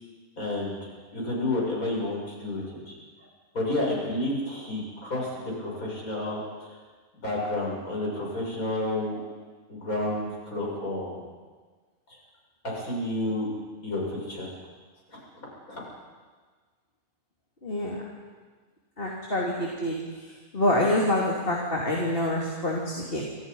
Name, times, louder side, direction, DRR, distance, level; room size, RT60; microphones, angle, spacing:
voice 1, 0.4-3.0 3.5-6.8 7.2-9.2 9.7-11.2 12.1-12.2 12.6-13.5 13.8-14.5 15.1-15.2 15.7-15.8, left 1 dB, 75° left, -3 dB, 7.9 m, -30 dB
voice 2, 17.6-18.0 19.0-20.2 20.5-23.2, left 1 dB, 40° left, -2 dB, 3.3 m, -26 dB
30.0 x 25.5 x 5.6 m, 1.4 s
omnidirectional pair, 1.5 m